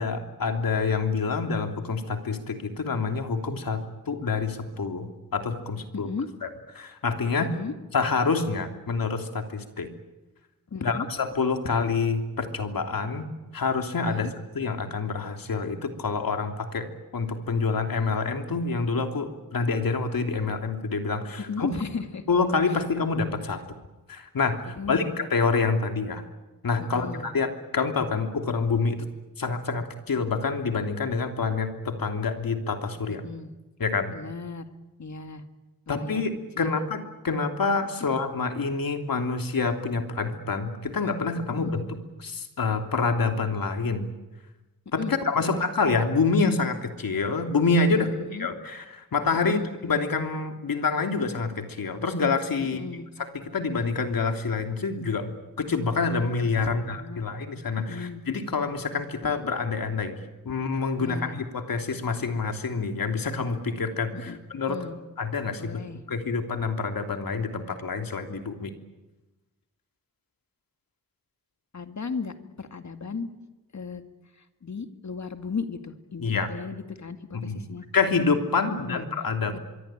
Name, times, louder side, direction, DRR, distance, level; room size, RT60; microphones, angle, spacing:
voice 1, 0.0-6.1 6.4-6.5 6.7-7.5 7.9-9.9 10.8-13.3 13.5-14.3 14.5-16.9 17.1-21.7 22.3-23.6 24.1-26.2 26.6-29.1 29.4-33.2 33.8-34.1 35.9-41.8 42.2-44.1 44.9-48.1 48.4-52.8 53.5-60.2 60.4-64.8 65.2-65.8 66.1-68.7 76.2-76.5 77.3-77.6 77.9-79.6, left 4 dB, 80° left, 5 dB, 3.2 m, -27 dB
voice 2, 5.9-6.3 7.5-7.7 10.7-11.1 14.1-14.3 21.5-22.2 24.8-25.2 26.8-27.3 33.2-33.5 34.1-34.7 35.0-35.4 35.9-36.9 41.5-41.8 45.0-45.2 45.4-45.6 48.0-48.5 49.4-49.7 52.7-53.1 56.7-57.3 57.9-58.2 59.2-59.3 61.0-61.4 64.1-64.4 64.7-65.0 65.6-66.0 71.7-73.3 73.7-74.0 74.6-76.2 76.5-77.9 78.7-79.1 79.5-79.6, left 5 dB, 55° left, 8 dB, 2.2 m, -35 dB
25.0 x 23.5 x 9.0 m, 1.1 s
wide cardioid pair, 100°, 34 cm